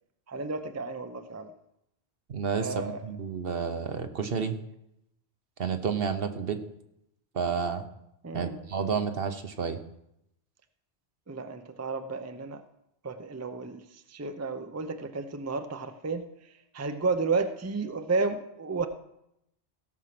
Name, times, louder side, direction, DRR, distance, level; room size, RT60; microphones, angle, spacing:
voice 1, 0.3-1.5 2.6-3.0 8.2-8.7 11.3-12.6 13.0-13.8 14.1-16.3 16.7-18.9, right 4 dB, 20° right, 8 dB, 0.6 m, -32 dB
voice 2, 2.3-4.6 5.6-6.6 7.3-7.8 8.3-9.8, right 6 dB, 60° right, 8 dB, 1.2 m, -30 dB
16.5 x 6.2 x 6.0 m, 0.81 s
omnidirectional pair, 1.1 m